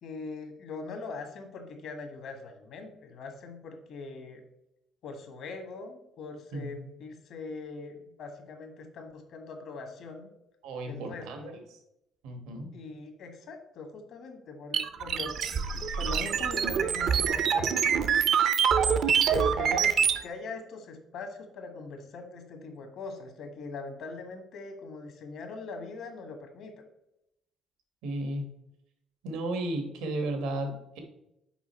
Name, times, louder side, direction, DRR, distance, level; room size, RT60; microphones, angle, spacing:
voice 1, 0.0-4.4 5.0-10.3 10.9-11.6 12.7-18.2 19.3-20.0 20.2-26.7, left 3 dB, 70° left, 5 dB, 1.4 m, -42 dB
voice 2, 10.6-11.4 12.2-12.7 28.0-28.5 29.2-31.0, right 1 dB, 85° right, 4 dB, 1.2 m, -34 dB
sound 1, 14.7-20.2, right 7 dB, 60° right, 0.5 m, -25 dB
6.1 x 4.5 x 4.3 m, 0.82 s
cardioid pair, 100°, 0 cm